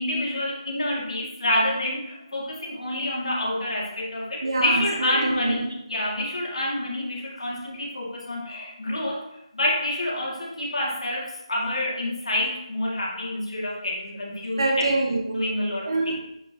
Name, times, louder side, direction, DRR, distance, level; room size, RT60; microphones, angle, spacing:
voice 1, 0.0-9.2 9.5-14.9 15.3-15.9, left 1 dB, 65° left, -4 dB, 2.2 m, -28 dB
voice 2, 4.4-5.6 14.5-15.5 15.8-16.2, right 2 dB, 45° right, 1 dB, 1.1 m, -25 dB
9.6 x 3.5 x 2.9 m, 0.79 s
figure-of-eight pair, 180°, 3 cm